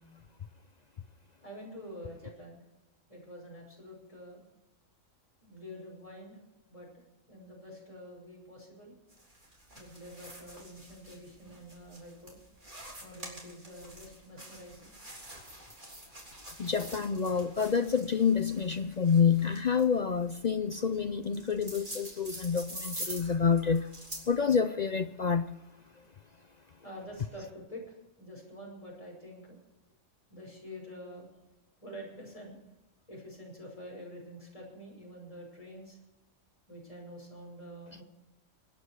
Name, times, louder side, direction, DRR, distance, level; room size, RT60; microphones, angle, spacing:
voice 1, 1.4-2.6 3.1-4.4 5.4-6.4 6.7-6.9 7.3-8.9 9.7-12.4 13.0-14.9 16.0-16.1 26.3-29.6 30.3-31.4 31.8-32.6 33.1-36.0 36.7-38.0, equal, 25° left, -2 dB, 5.7 m, -47 dB
sound 1, 9.1-24.3, right 1 dB, 35° right, 3.7 m, -46 dB
voice 2, 16.6-23.8 24.3-25.4, left 6 dB, 50° left, 9 dB, 0.5 m, -28 dB
25.0 x 9.8 x 4.7 m, 1.0 s
omnidirectional pair, 1.4 m